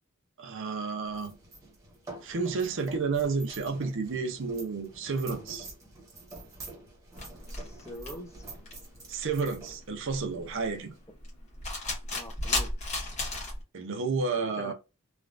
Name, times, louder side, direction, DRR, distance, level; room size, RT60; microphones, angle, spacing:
voice 1, 0.4-1.3 2.2-5.7 9.1-10.9 13.7-14.7, right 4 dB, 60° right, 0.6 m, -31 dB
sound 1, 1.0-11.0, right 2 dB, 15° right, 0.9 m, -48 dB
sound 2, 7.2-13.6, left 2 dB, 30° left, 1.2 m, -35 dB
voice 2, 7.6-8.5 12.1-12.7 14.4-14.7, left 1 dB, 10° left, 0.5 m, -43 dB
3.3 x 2.3 x 2.4 m
head